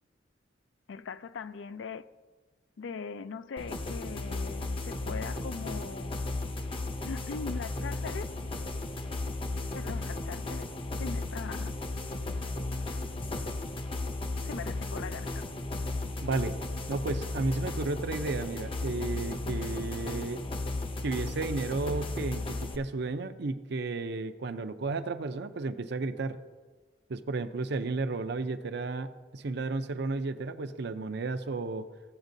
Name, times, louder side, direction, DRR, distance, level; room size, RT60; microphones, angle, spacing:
voice 1, 0.9-2.0 2.8-6.1 7.0-8.3 9.7-10.7 11.0-11.7 14.5-15.5, left 5 dB, 85° left, 0.4 m, -40 dB
sound 1, 3.6-22.8, left 2 dB, 30° left, 0.6 m, -35 dB
voice 2, 16.2-16.6 16.9-20.4 21.0-26.4 27.1-31.8, right 3 dB, 65° right, 0.5 m, -33 dB
15.5 x 8.1 x 2.6 m
head